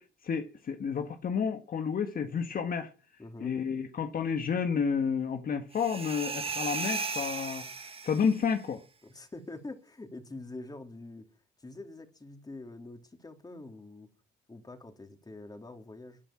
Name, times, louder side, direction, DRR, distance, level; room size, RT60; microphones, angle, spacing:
voice 1, 0.0-2.9 3.4-8.8, left 6 dB, 50° left, 1.7 m, -31 dB
voice 2, 3.2-3.5 9.0-11.3 11.6-14.1 14.5-16.2, left 2 dB, 20° left, 3.4 m, -45 dB
sound 1, 5.7-8.5, right 4 dB, 30° right, 1.8 m, -36 dB
12.5 x 10.0 x 8.9 m
cardioid pair, 85°, 19 cm